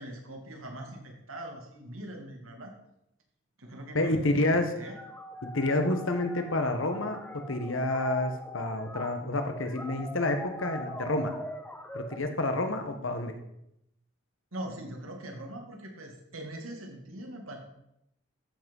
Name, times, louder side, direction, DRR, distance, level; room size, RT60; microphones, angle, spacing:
voice 1, 0.0-2.7 3.6-5.0 14.5-17.6, right 1 dB, 85° right, 2 dB, 2.5 m, -42 dB
voice 2, 3.9-4.7 5.4-11.3 11.9-13.3, left 2 dB, 70° left, 6 dB, 1.5 m, -29 dB
sound 1, 4.8-12.2, left 1 dB, 10° left, 0.8 m, -42 dB
13.5 x 6.2 x 5.5 m, 0.80 s
head